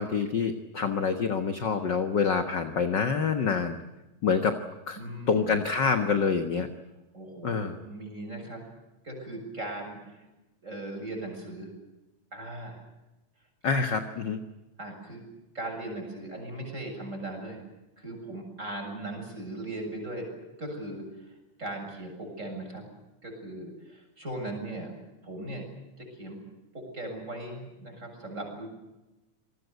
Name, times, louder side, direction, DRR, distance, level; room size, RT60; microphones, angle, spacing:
voice 1, 0.0-3.8 4.2-4.6 4.9-5.0 5.3-6.7 7.4-7.8 13.6-14.4, left 5 dB, 45° left, 8 dB, 1.6 m, -26 dB
voice 2, 5.0-5.6 7.1-8.6 9.0-10.2 10.6-11.7 12.3-12.8 14.8-15.2 15.5-17.6 18.0-20.3 20.6-21.0 21.6-22.8 23.2-24.9 25.2-25.6 26.0-26.4 26.7-28.7, right 1 dB, 20° right, 2 dB, 7.8 m, -38 dB
28.5 x 20.5 x 8.2 m, 1.0 s
omnidirectional pair, 3.6 m